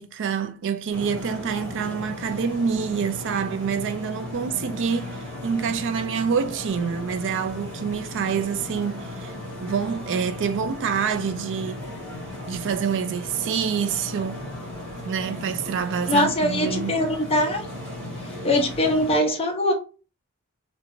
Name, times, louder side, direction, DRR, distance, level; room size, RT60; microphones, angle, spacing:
voice 1, 0.0-11.8 12.5-14.4 15.0-17.0, right 6 dB, 60° right, 0.4 m, -27 dB
sound 1, 0.9-19.2, left 1 dB, 5° left, 1.8 m, -36 dB
voice 2, 16.1-17.6 18.4-19.7, left 1 dB, 25° left, 0.7 m, -22 dB
3.3 x 2.9 x 2.6 m
head